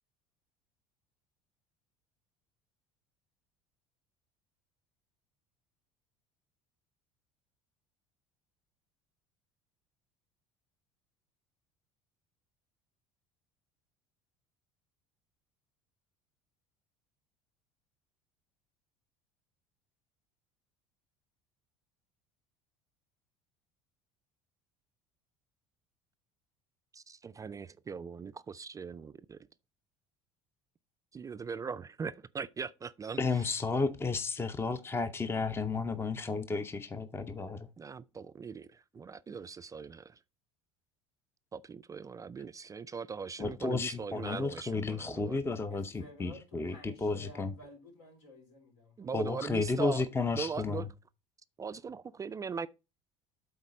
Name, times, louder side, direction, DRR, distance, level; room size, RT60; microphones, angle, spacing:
voice 1, 26.9-29.4 31.1-33.6 37.8-40.2 41.5-45.4 49.0-50.0 50.3-50.9 51.6-52.7, right 5 dB, 20° right, 0.3 m, -40 dB
voice 2, 33.2-37.7 43.4-47.5 49.1-50.8, left 4 dB, 15° left, 0.6 m, -33 dB
voice 3, 45.7-49.1, equal, 75° left, 3.6 m, -53 dB
8.1 x 3.9 x 5.1 m
hypercardioid pair, 70°, 15 cm